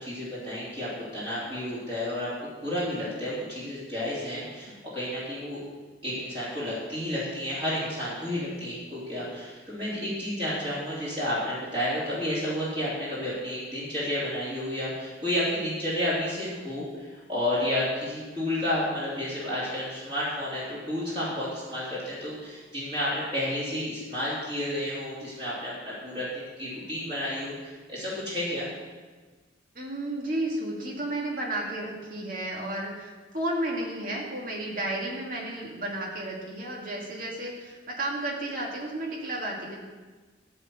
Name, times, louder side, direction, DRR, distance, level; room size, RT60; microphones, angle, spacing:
voice 1, 0.0-5.6 6.0-28.7, left 1 dB, 30° right, -9 dB, 3.3 m, -31 dB
voice 2, 29.7-39.8, right 1 dB, 50° right, -2 dB, 2.5 m, -32 dB
14.0 x 4.8 x 7.7 m, 1.3 s
head